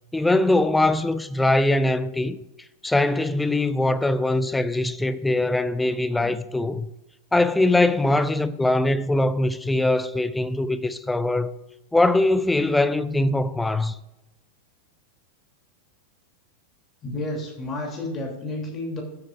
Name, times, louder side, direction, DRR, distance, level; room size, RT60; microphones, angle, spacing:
voice 1, 0.1-2.4 2.8-6.9 7.3-11.5 11.9-14.0, left 2 dB, 5° left, 0.6 m, -22 dB
voice 2, 17.0-19.0, left 2 dB, 25° left, 3.1 m, -31 dB
15.0 x 8.7 x 2.5 m
figure-of-eight pair, 90°, 0 cm